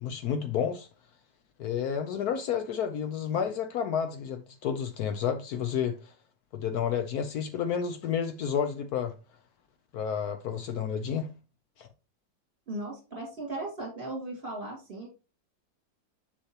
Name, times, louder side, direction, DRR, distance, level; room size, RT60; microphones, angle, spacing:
voice 1, 0.0-0.9 1.6-6.1 6.5-9.1 9.9-11.3 11.8-11.9, left 8 dB, 70° left, 1.0 m, -30 dB
voice 2, 12.7-15.1, right 2 dB, 35° right, 2.6 m, -37 dB
6.6 x 5.7 x 2.8 m
omnidirectional pair, 2.0 m